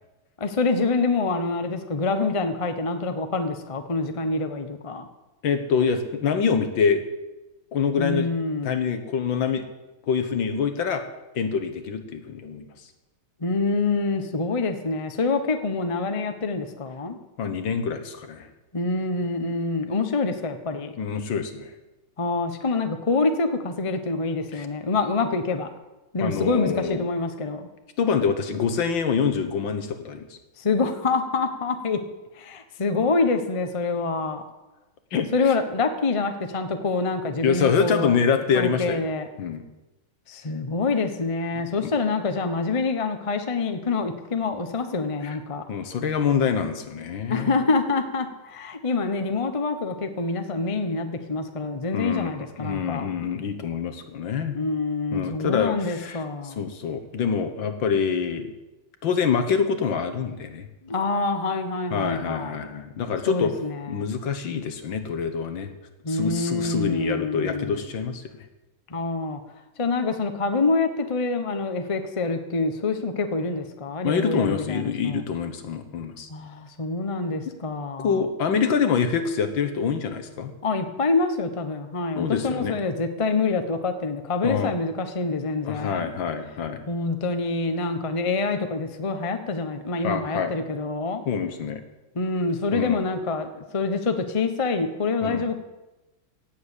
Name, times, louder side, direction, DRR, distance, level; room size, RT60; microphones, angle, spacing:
voice 1, 0.4-5.1 8.0-8.7 13.4-17.2 18.7-20.9 22.2-25.7 26.1-27.6 30.6-32.0 32.4-34.4 35.3-38.2 38.5-39.3 40.3-45.6 47.3-53.1 54.5-56.7 60.8-62.7 63.3-64.1 66.0-67.8 68.9-69.4 69.8-75.2 76.3-78.2 80.6-86.1 86.9-91.2 92.1-95.6, left 3 dB, 25° left, 7 dB, 0.8 m, -26 dB
voice 2, 5.4-7.0 7.7-8.3 8.6-9.7 10.1-11.0 11.4-12.7 17.4-18.5 21.0-21.7 24.5-24.7 26.2-27.1 28.0-30.4 35.1-35.3 37.4-39.0 39.4-39.6 41.8-41.9 45.2-45.4 45.7-47.5 51.9-52.3 52.6-54.6 55.1-58.5 59.0-60.7 61.9-63.5 63.9-65.7 66.1-68.2 74.0-76.3 77.5-77.6 78.0-80.5 82.2-82.8 84.4-84.7 85.6-86.8 90.0-90.5 91.3-91.8 92.7-93.0 95.2-95.5, left 6 dB, 70° left, 8 dB, 2.0 m, -25 dB
17.0 x 7.5 x 8.4 m, 1.0 s
omnidirectional pair, 2.3 m